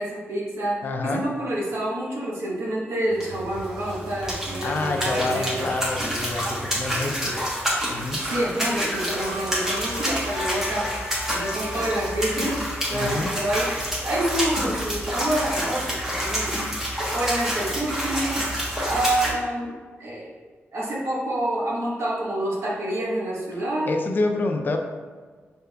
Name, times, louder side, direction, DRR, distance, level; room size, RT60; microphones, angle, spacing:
voice 1, 0.0-5.7 8.2-10.9 11.3-12.6 12.9-13.7 14.0-18.4 18.8-20.3 20.7-23.9, right 1 dB, 75° right, -4 dB, 1.0 m, -28 dB
voice 2, 0.8-1.2 4.6-7.4 7.9-8.3 12.9-13.3 23.9-24.8, left 2 dB, 45° left, 3 dB, 0.4 m, -27 dB
sound 1, 3.1-19.3, equal, 10° right, 1.0 m, -28 dB
sound 2, 9.2-15.0, left 2 dB, 90° left, 0.6 m, -38 dB
5.2 x 3.4 x 2.2 m, 1.5 s
wide cardioid pair, 135°, 5 cm